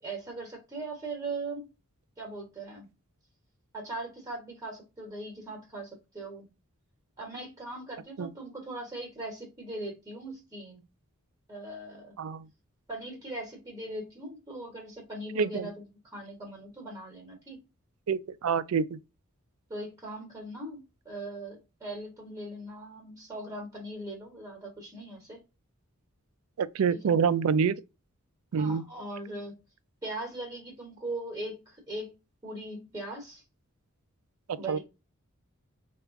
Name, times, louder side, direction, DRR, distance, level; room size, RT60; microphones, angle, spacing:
voice 1, 0.0-1.7 2.2-2.9 3.7-6.5 7.2-10.8 11.5-12.1 12.9-17.6 19.7-25.4 26.9-27.2 28.5-29.6 30.0-32.2 32.4-33.4 34.6-34.8, right 2 dB, 15° right, 1.0 m, -40 dB
voice 2, 15.4-15.7 18.1-19.0 26.6-27.8 28.5-28.8 34.5-34.8, right 6 dB, 70° right, 0.3 m, -27 dB
3.4 x 2.4 x 3.6 m
head